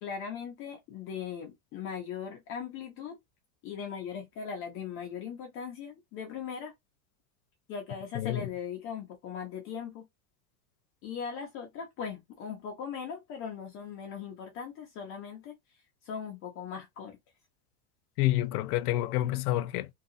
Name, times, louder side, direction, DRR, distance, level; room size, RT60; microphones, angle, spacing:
voice 1, 0.0-3.2 3.6-6.7 7.7-10.1 11.0-15.5 16.0-17.2, left 7 dB, 30° left, 0.5 m, -39 dB
voice 2, 8.1-8.5 18.2-19.9, left 15 dB, 85° left, 0.5 m, -28 dB
2.8 x 2.3 x 2.5 m
supercardioid pair, 155°, 44 cm